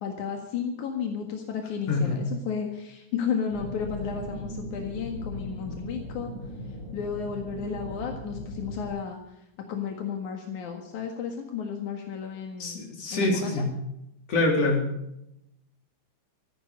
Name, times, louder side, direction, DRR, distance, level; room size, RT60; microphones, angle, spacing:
voice 1, 0.0-6.3 6.9-9.2 9.7-12.9 13.1-13.5, left 7 dB, 85° left, 2 dB, 3.2 m, -33 dB
voice 2, 1.9-2.2 5.6-5.8 12.6-13.7 14.3-14.8, left 2 dB, 55° left, 1 dB, 4.8 m, -25 dB
sound 1, 3.5-8.9, left 1 dB, 25° left, 7.8 m, -38 dB
17.0 x 14.5 x 5.2 m, 0.81 s
omnidirectional pair, 3.4 m